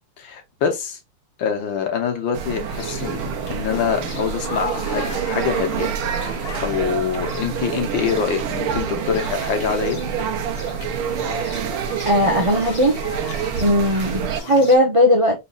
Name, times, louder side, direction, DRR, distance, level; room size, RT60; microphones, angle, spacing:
voice 1, 0.2-1.0 1.4-5.9 6.6-10.0, left 7 dB, 65° left, 1.6 m, -25 dB
sound 1, 2.3-14.4, right 7 dB, 80° right, 1.6 m, -27 dB
sound 2, 2.7-14.8, left 2 dB, 40° left, 1.0 m, -35 dB
voice 2, 12.0-12.9 13.6-15.4, left 1 dB, 50° right, 0.3 m, -17 dB
5.6 x 4.1 x 2.3 m
omnidirectional pair, 2.3 m